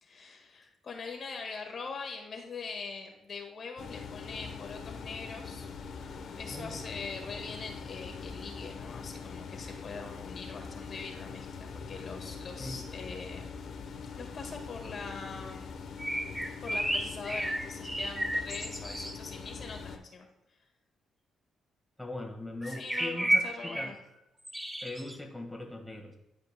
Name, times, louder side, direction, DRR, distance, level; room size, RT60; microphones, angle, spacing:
voice 1, 0.0-5.7 6.4-13.5 14.2-15.7 16.6-20.3 22.6-24.0, left 4 dB, 50° left, 3 dB, 1.7 m, -42 dB
sound 1, 3.8-20.0, left 5 dB, 65° left, 0.8 m, -43 dB
voice 2, 6.5-6.8 12.6-12.8 22.0-23.9 24.8-26.2, left 1 dB, 5° left, 2 dB, 1.6 m, -40 dB
sound 2, 16.0-19.2 22.6-23.9 24.4-25.2, right 1 dB, 10° right, 1.0 m, -32 dB
11.5 x 5.2 x 2.2 m, 0.90 s
cardioid pair, 90°, 0 cm